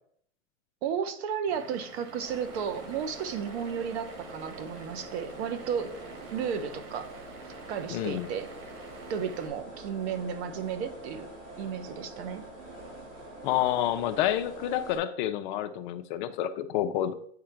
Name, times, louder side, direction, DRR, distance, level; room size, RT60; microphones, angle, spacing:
voice 1, 0.8-5.9 6.3-7.1 7.7-8.5 9.1-11.3 11.6-12.4, right 7 dB, 55° right, 11 dB, 1.0 m, -33 dB
Vehicle / Engine, 1.5-9.5, right 3 dB, 80° right, 1.5 m, -50 dB
sound 1, 2.2-15.0, right 1 dB, 35° right, 3.0 m, -45 dB
voice 2, 7.9-8.3 13.4-17.1, left 12 dB, 40° left, 10 dB, 0.5 m, -29 dB
8.5 x 3.8 x 4.4 m, 0.66 s
supercardioid pair, 135°, 38 cm